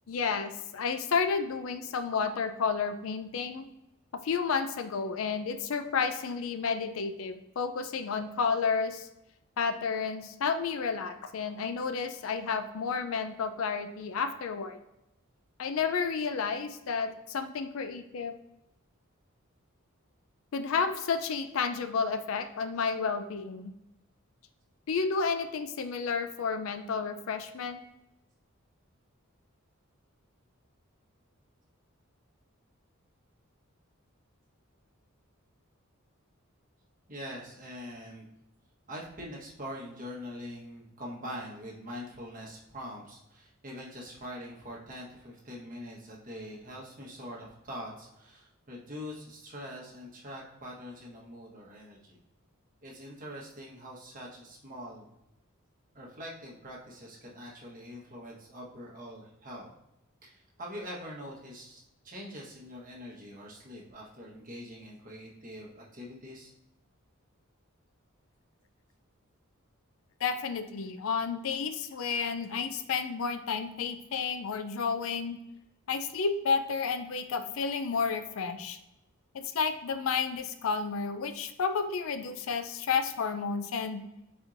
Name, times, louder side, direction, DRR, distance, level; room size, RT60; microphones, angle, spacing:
voice 1, 0.1-3.7 4.2-9.1 9.6-14.8 15.6-18.4 20.5-23.7 24.9-27.8 70.2-75.4 75.9-78.8 79.3-84.0, left 5 dB, 70° left, 9 dB, 0.4 m, -31 dB
voice 2, 37.1-38.3 38.9-52.2 52.8-55.1 55.9-59.7 60.2-66.5, equal, 40° right, -3 dB, 1.1 m, -44 dB
4.4 x 4.3 x 2.5 m, 0.89 s
head